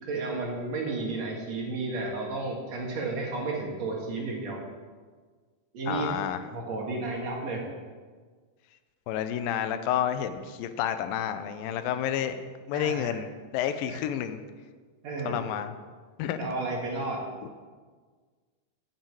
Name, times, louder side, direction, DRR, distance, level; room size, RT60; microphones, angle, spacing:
voice 1, 0.0-4.6 5.7-6.1 6.5-7.6 12.7-13.2 13.9-14.0 15.0-15.4 16.4-17.2, right 3 dB, 55° right, -1 dB, 2.8 m, -32 dB
voice 2, 5.9-6.4 9.1-12.4 12.7-13.3 13.5-14.4 15.3-15.7 16.2-16.5, left 10 dB, 90° left, 10 dB, 2.4 m, -30 dB
8.8 x 7.6 x 8.7 m, 1.5 s
omnidirectional pair, 4.0 m